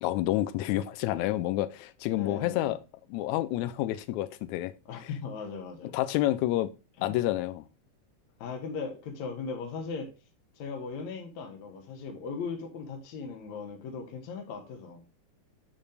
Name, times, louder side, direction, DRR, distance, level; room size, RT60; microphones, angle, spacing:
voice 1, 0.0-2.8 3.1-4.7 5.0-5.1 5.9-6.7 7.0-7.7, left 15 dB, 80° left, 1.7 m, -29 dB
voice 2, 2.2-2.7 4.9-6.0 7.0-7.2 8.4-10.1 10.5-15.0, left 5 dB, 60° left, 2.5 m, -38 dB
8.8 x 5.3 x 3.4 m
omnidirectional pair, 3.9 m